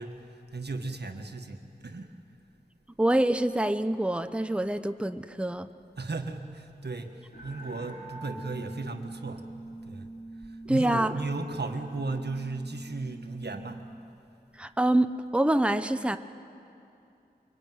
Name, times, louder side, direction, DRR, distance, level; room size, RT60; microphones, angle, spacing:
voice 1, 0.0-2.1 6.0-9.4 9.8-10.1 10.4-13.8, right 3 dB, 90° right, 6 dB, 1.5 m, -35 dB
voice 2, 3.0-5.7 10.7-11.1 14.6-16.2, right 1 dB, 5° right, 10 dB, 0.8 m, -26 dB
sound 1, 7.3-14.0, right 2 dB, 65° left, 4.5 m, -44 dB
25.5 x 23.5 x 9.4 m, 2.7 s
wide cardioid pair, 55°, 17 cm